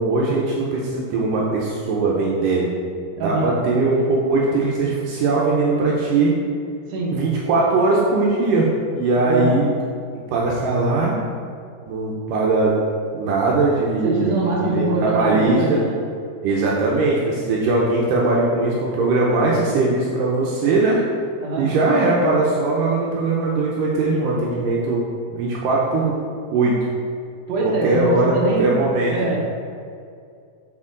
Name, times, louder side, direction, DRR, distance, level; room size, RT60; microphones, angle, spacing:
voice 1, 0.0-2.7 3.2-6.4 7.1-9.7 10.3-11.2 11.9-12.7 13.1-15.8 16.4-21.0 21.6-25.0 25.3-26.2 26.5-26.8 27.6-29.1, right 3 dB, 80° right, -4 dB, 2.3 m, -20 dB
voice 2, 3.2-3.5 6.9-7.2 9.2-9.5 14.0-16.0 21.4-21.7 27.5-28.8 29.1-29.7, right 2 dB, 60° right, -5 dB, 2.4 m, -23 dB
8.5 x 4.5 x 3.7 m, 2.3 s
omnidirectional pair, 3.8 m